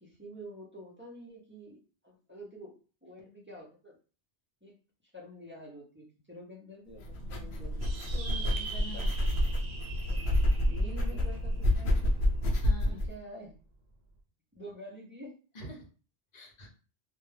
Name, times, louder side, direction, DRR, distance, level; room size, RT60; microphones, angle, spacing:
voice 1, 0.0-1.8 2.0-2.7 3.0-4.0 4.6-4.7 5.1-7.9 8.3-8.4 8.9-9.1 10.1-12.2 12.8-13.5 14.6-15.3, equal, 15° right, -4 dB, 0.5 m, -48 dB
sound 1, 7.0-13.1, left 1 dB, 80° left, 0.8 m, -29 dB
sound 2, 7.8-12.6, right 4 dB, 70° right, 0.9 m, -44 dB
voice 2, 8.1-9.1 12.6-13.0 15.5-15.9 16.3-16.7, right 1 dB, 45° left, 1 dB, 0.7 m, -45 dB
2.2 x 2.1 x 3.2 m, 0.37 s
omnidirectional pair, 1.1 m